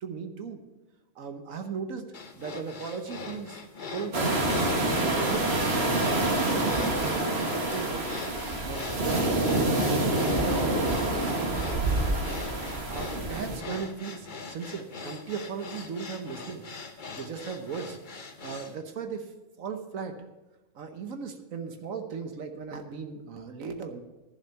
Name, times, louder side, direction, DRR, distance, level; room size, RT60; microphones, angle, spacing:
voice 1, 0.0-0.6 1.2-3.6 3.9-4.6 5.0-8.1 8.6-12.2 12.9-16.7 17.1-18.0 18.4-19.3 19.6-20.2 20.7-24.0, right 5 dB, 65° right, 7 dB, 1.3 m, -37 dB
sound 1, 2.1-18.8, left 4 dB, 40° left, 1.0 m, -41 dB
sound 2, 4.1-13.6, right 2 dB, 45° right, 1.8 m, -27 dB
11.5 x 7.2 x 6.9 m, 1.1 s
omnidirectional pair, 1.5 m